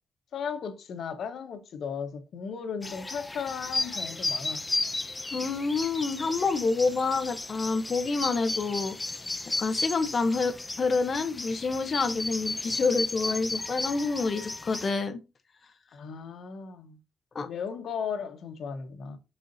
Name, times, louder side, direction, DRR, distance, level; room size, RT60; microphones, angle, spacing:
voice 1, 0.3-4.6 15.9-17.0 17.4-19.2, left 6 dB, 65° left, 1.4 m, -36 dB
sound 1, 2.8-14.9, left 2 dB, 20° left, 0.6 m, -34 dB
voice 2, 5.3-9.0 9.6-15.2 17.3-17.5, left 4 dB, 40° left, 1.0 m, -28 dB
6.6 x 5.6 x 2.8 m
cardioid pair, 90°, 0 cm